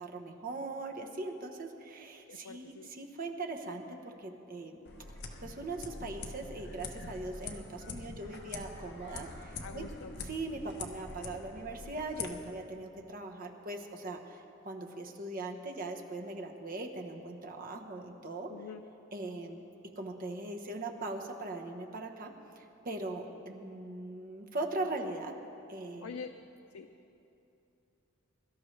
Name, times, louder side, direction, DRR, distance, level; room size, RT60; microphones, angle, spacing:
voice 1, 0.0-4.8 5.4-9.8 10.2-18.5 19.1-19.6 20.0-25.3 25.7-26.2, right 2 dB, 40° right, 2 dB, 1.0 m, -40 dB
voice 2, 2.3-2.9 9.6-10.1 18.5-18.8 26.0-26.3 26.7-26.9, left 5 dB, 85° left, 7 dB, 0.5 m, -45 dB
sound 1, 4.8-12.3, left 3 dB, 50° left, 1.0 m, -44 dB
23.0 x 12.5 x 3.3 m, 2.9 s
head